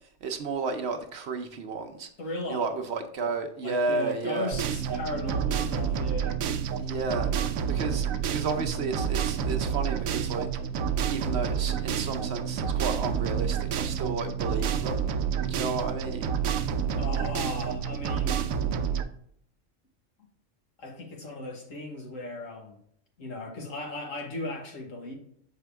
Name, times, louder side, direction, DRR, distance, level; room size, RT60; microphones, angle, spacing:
voice 1, 0.2-2.1 2.5-4.5 6.8-7.3 7.7-10.5 11.1-15.0 15.5-16.3, right 4 dB, 60° right, 5 dB, 0.9 m, -32 dB
voice 2, 2.2-2.7 3.6-6.4 17.0-18.5 20.8-22.8 23.2-25.2, left 2 dB, 75° left, 1 dB, 1.7 m, -36 dB
sound 1, 4.5-19.0, right 7 dB, 85° right, 1.0 m, -29 dB
6.7 x 4.5 x 3.4 m, 0.68 s
omnidirectional pair, 1.4 m